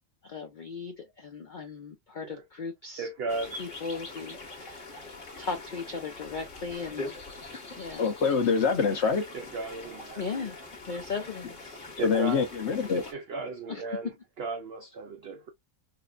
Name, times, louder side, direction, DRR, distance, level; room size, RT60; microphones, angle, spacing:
voice 1, 0.2-3.1 3.6-4.9 5.4-7.1 7.8-8.1 10.2-11.8 13.7-14.1, left 5 dB, 75° left, 0.4 m, -37 dB
voice 2, 3.0-3.6 9.3-10.5 12.0-12.5 13.1-14.1 14.4-15.5, right 4 dB, 75° right, 0.5 m, -36 dB
sound 1, 3.3-13.1, left 2 dB, 35° left, 1.3 m, -43 dB
voice 3, 8.0-9.2 12.0-13.0, left 5 dB, 55° left, 0.9 m, -25 dB
4.0 x 2.2 x 2.4 m
omnidirectional pair, 1.6 m